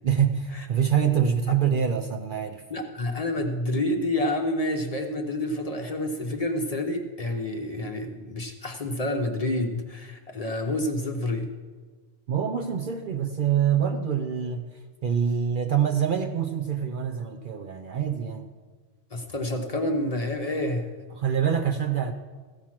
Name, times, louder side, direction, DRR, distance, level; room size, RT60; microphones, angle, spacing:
voice 1, 0.0-2.6 12.3-18.5 21.1-22.1, right 8 dB, 55° right, 6 dB, 0.6 m, -25 dB
voice 2, 2.7-11.5 19.1-20.9, left 1 dB, 35° left, 4 dB, 0.7 m, -28 dB
15.0 x 6.2 x 5.8 m, 1.4 s
omnidirectional pair, 1.2 m